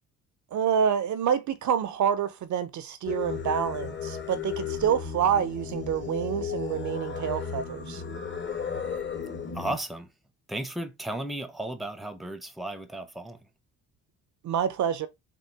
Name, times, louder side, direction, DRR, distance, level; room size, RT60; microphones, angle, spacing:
voice 1, 0.5-8.0 14.4-15.1, right 8 dB, 55° right, 0.6 m, -27 dB
Singing, 3.0-9.8, left 6 dB, 30° left, 1.0 m, -34 dB
voice 2, 9.5-10.1 10.5-13.5, right 1 dB, ahead, 0.7 m, -34 dB
3.7 x 2.4 x 3.3 m
supercardioid pair, 65°, 36 cm